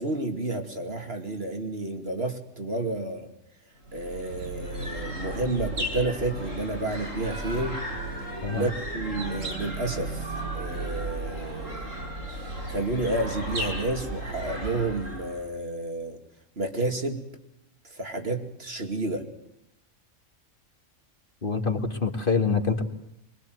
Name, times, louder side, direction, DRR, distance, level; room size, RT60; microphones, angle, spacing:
voice 1, 0.0-3.3 3.9-7.8 8.5-10.3 10.5-11.9 12.4-16.2 16.6-17.2 17.9-19.3, right 2 dB, 50° right, 5 dB, 2.9 m, -30 dB
sound 1, 3.9-15.4, right 1 dB, 85° right, 8.3 m, -34 dB
voice 2, 21.4-22.8, left 5 dB, 45° left, 6 dB, 2.1 m, -25 dB
23.5 x 23.5 x 7.9 m, 0.80 s
omnidirectional pair, 1.3 m